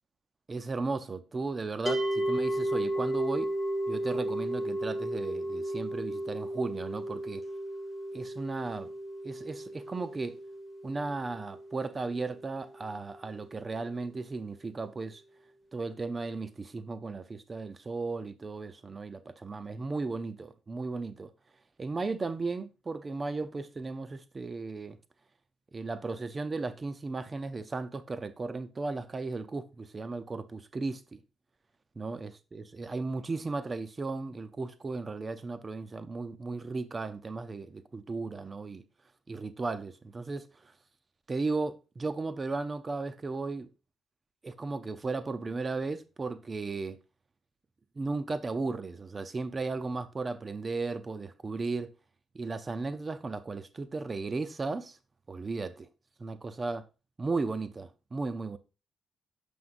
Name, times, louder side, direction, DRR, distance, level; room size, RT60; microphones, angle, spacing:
voice 1, 0.5-3.5 3.9-7.4 8.1-8.9 9.2-10.4 10.8-15.2 15.7-21.3 21.8-25.0 25.7-31.2 32.0-38.8 39.3-40.7 41.3-43.7 44.4-47.0 48.0-51.9 52.3-55.0 55.3-55.9 56.2-56.8 57.2-58.6, right 3 dB, 30° right, 0.7 m, -35 dB
sound 1, 1.9-13.0, right 1 dB, 10° left, 1.5 m, -34 dB
9.6 x 5.5 x 2.6 m
cardioid pair, 90°, 0 cm